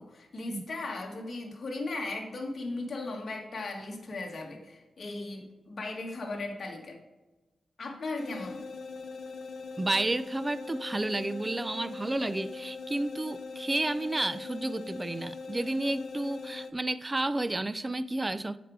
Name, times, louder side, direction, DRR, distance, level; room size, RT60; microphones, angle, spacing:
voice 1, 0.0-7.0 7.8-8.6, left 2 dB, 45° left, 1 dB, 1.6 m, -37 dB
sound 1, 8.2-16.7, left 4 dB, 70° left, 0.8 m, -41 dB
voice 2, 9.8-18.6, right 2 dB, 20° right, 15 dB, 0.3 m, -31 dB
7.8 x 5.1 x 4.8 m, 1.1 s
wide cardioid pair, 110°, 0 cm